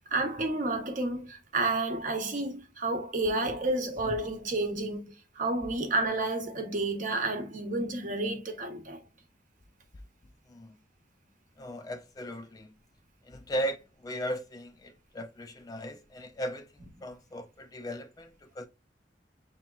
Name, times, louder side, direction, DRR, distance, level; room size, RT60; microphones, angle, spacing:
voice 1, 0.1-5.0 5.4-9.0, right 2 dB, 45° right, 0.9 m, -30 dB
voice 2, 11.6-12.7 13.3-16.7 17.0-18.6, equal, 20° left, 0.4 m, -37 dB
6.7 x 2.9 x 2.3 m
head